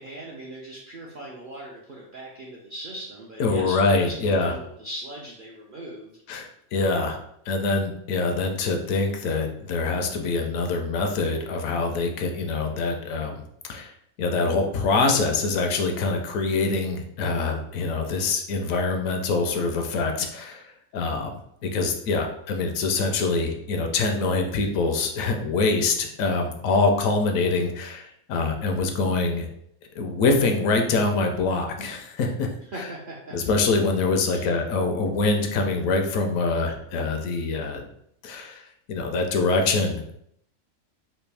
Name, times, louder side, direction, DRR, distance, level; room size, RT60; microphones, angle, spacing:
voice 1, 0.0-6.2 32.7-33.4 34.3-34.5, right 1 dB, 60° right, -3 dB, 0.5 m, -39 dB
voice 2, 3.4-4.5 6.3-7.2 7.5-13.4 13.7-13.9 14.2-20.7 20.9-29.5 30.0-32.5 32.8-32.9 33.3-37.8 38.2-38.6 38.9-40.1, left 3 dB, 75° left, 4 dB, 1.0 m, -24 dB
3.3 x 2.5 x 3.3 m, 0.72 s
omnidirectional pair, 1.5 m